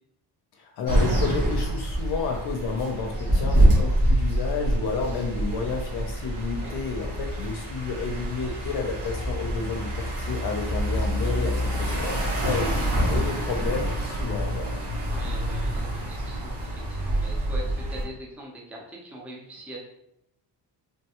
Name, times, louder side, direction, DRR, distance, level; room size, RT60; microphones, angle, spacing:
voice 1, 0.6-14.8, left 4 dB, 60° left, 2 dB, 0.6 m, -31 dB
sound 1, 0.9-18.0, right 1 dB, 60° right, 1.4 m, -26 dB
voice 2, 3.5-3.9 6.6-6.8 15.0-19.8, right 1 dB, 5° right, -3 dB, 0.6 m, -42 dB
3.3 x 2.2 x 2.9 m, 0.79 s
cardioid pair, 110°, 44 cm